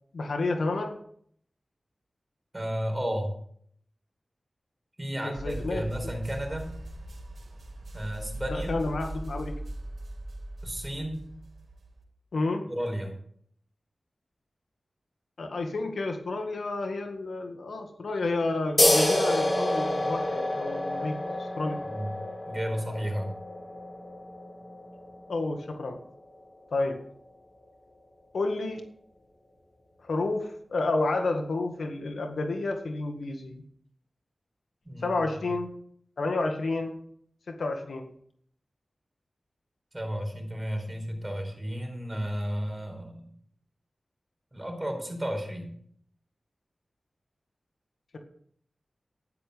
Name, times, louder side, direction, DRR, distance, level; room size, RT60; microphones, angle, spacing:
voice 1, 0.1-1.0 5.2-6.1 8.5-9.5 12.3-12.6 15.4-21.8 25.3-26.0 26.7-27.0 28.3-28.8 30.0-33.6 35.0-35.7 36.2-37.0 37.5-38.1, left 2 dB, 90° left, 4 dB, 1.8 m, -30 dB
voice 2, 2.5-3.3 5.0-6.7 7.9-8.7 10.6-11.2 12.7-13.2 21.8-22.2 22.5-23.3 34.8-35.2 39.9-43.3 44.5-45.7, equal, 20° right, 3 dB, 4.7 m, -33 dB
sound 1, 5.3-12.0, right 1 dB, 85° right, 3.1 m, -39 dB
sound 2, 18.8-25.9, left 1 dB, 35° left, 5.0 m, -28 dB
12.5 x 10.5 x 5.2 m, 0.63 s
wide cardioid pair, 60°, 0 cm